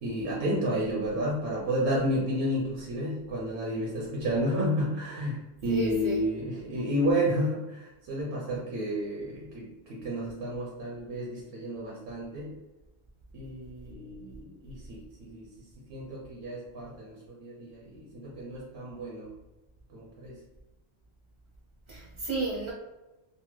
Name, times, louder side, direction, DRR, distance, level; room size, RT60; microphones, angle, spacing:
voice 1, 0.0-12.5 13.3-19.3 19.9-20.4, equal, 85° right, -4 dB, 1.0 m, -31 dB
voice 2, 5.7-6.2 21.9-22.7, right 2 dB, 40° right, -4 dB, 0.4 m, -32 dB
2.9 x 2.1 x 3.0 m, 1.1 s
omnidirectional pair, 1.1 m